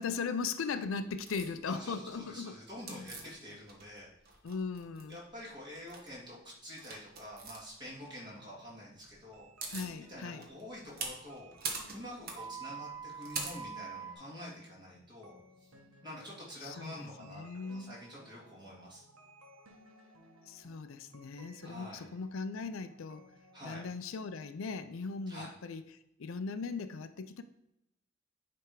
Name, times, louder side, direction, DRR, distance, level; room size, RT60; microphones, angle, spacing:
voice 1, 0.0-3.1 4.4-5.2 9.7-10.4 16.6-18.0 20.5-23.2 23.6-27.4, left 5 dB, 70° left, 11 dB, 0.4 m, -39 dB
sound 1, 1.3-1.5 2.9-4.0 4.3-5.2 5.7-6.1 6.8-7.6 9.1-9.2 9.4-9.9 10.4-14.1, right 5 dB, 50° right, 1.3 m, -41 dB
voice 2, 1.7-4.1 5.1-9.8 10.1-15.7 16.0-17.4 17.7-19.0 21.6-22.1 23.5-23.8 25.3-25.5, equal, 20° right, -6 dB, 2.8 m, -47 dB
sound 2, 7.9-23.6, right 1 dB, 90° right, 1.4 m, -60 dB
9.9 x 3.5 x 4.7 m, 0.82 s
head